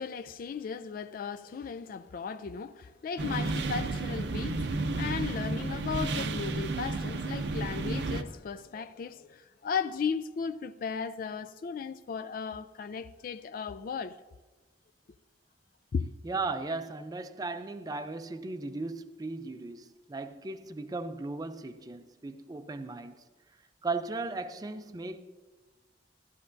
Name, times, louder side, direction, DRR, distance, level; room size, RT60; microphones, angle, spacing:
voice 1, 0.0-14.2 15.9-16.1, left 6 dB, 55° left, 0.3 m, -36 dB
sound 1, 3.2-8.2, right 3 dB, 70° right, 0.6 m, -32 dB
voice 2, 16.2-23.2 23.8-25.2, right 3 dB, 20° right, 0.4 m, -36 dB
15.0 x 11.5 x 2.6 m
head